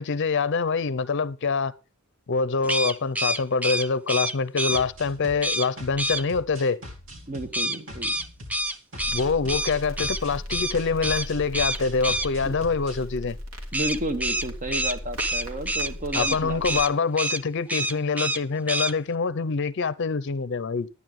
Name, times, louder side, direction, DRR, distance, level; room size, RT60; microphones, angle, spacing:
voice 1, 0.0-1.7 2.3-6.8 9.1-13.4 16.1-20.9, left 4 dB, 60° left, 0.6 m, -25 dB
sound 1, 2.6-4.8 5.4-5.7 6.0-6.2 7.5-10.2 10.5-10.7 11.0-11.3 11.5-12.3 13.7-16.4 16.6-16.9 17.2-17.4 17.7-18.4 18.7-18.9, right 1 dB, 5° right, 0.4 m, -27 dB
sound 2, 4.7-13.0, equal, 65° right, 3.4 m, -42 dB
voice 2, 7.3-8.1 12.4-12.6 13.7-16.8, right 1 dB, 40° right, 1.2 m, -32 dB
Crackle, 9.0-16.9, left 1 dB, 85° right, 2.4 m, -37 dB
12.0 x 9.5 x 3.6 m
head